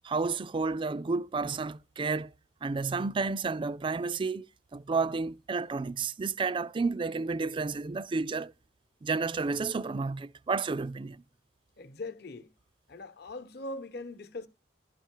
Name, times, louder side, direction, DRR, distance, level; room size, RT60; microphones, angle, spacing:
voice 1, 0.0-2.3 2.6-8.5 9.0-11.2, right 4 dB, 25° right, 0.3 m, -31 dB
voice 2, 11.8-12.5 12.9-14.5, left 2 dB, 55° left, 0.9 m, -41 dB
12.5 x 4.6 x 4.5 m
head